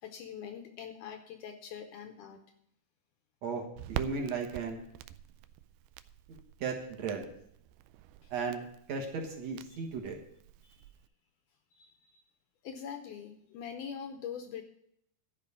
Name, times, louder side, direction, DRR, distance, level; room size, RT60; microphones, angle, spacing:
voice 1, 0.0-2.4 8.2-8.3 9.7-9.8 10.6-10.8 11.8-12.2 12.6-14.6, left 7 dB, 80° left, 6 dB, 1.9 m, -43 dB
Crackle, 3.8-11.1, right 11 dB, 80° right, 2.3 m, -45 dB
voice 2, 3.9-4.8 6.6-7.2 8.3-10.1, right 5 dB, 55° right, 2 dB, 2.0 m, -35 dB
13.0 x 5.2 x 8.4 m, 0.74 s
omnidirectional pair, 4.6 m